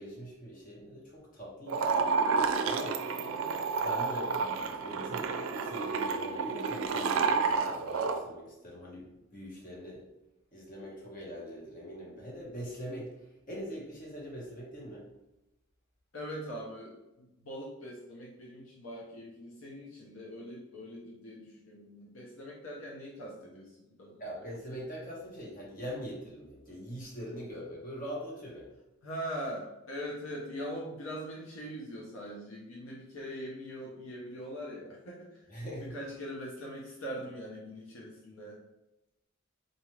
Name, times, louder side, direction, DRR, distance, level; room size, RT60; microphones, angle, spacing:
voice 1, 0.0-1.9 2.6-3.0 3.8-5.3 5.6-10.0 10.5-15.1 24.2-28.7 35.5-36.0, equal, 45° left, -4 dB, 1.1 m, -43 dB
sound 1, 1.7-8.2, right 5 dB, 80° right, 0.4 m, -30 dB
voice 2, 3.1-3.5 7.7-7.9 16.1-24.2 29.0-35.4 35.8-38.6, equal, 75° left, -3 dB, 0.7 m, -42 dB
4.0 x 2.4 x 3.1 m, 0.95 s
head